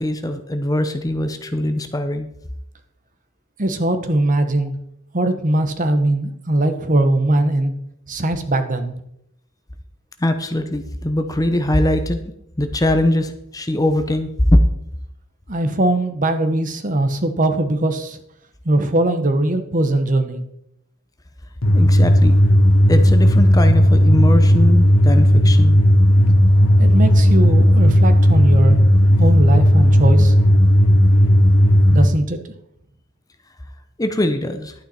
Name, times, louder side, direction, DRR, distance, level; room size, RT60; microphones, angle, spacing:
voice 1, 0.0-2.3 10.2-12.2 12.6-14.6 21.7-22.3 22.9-25.8 34.0-34.7, left 1 dB, 15° left, 8 dB, 0.7 m, -21 dB
voice 2, 3.6-4.7 5.1-7.7 8.1-8.9 15.5-18.2 18.6-20.4 26.8-28.8 29.2-30.4 31.9-32.4, right 1 dB, 40° right, 9 dB, 1.0 m, -20 dB
sound 1, 21.6-32.1, equal, 70° left, 1.4 m, -13 dB
11.5 x 9.0 x 4.3 m, 0.77 s
head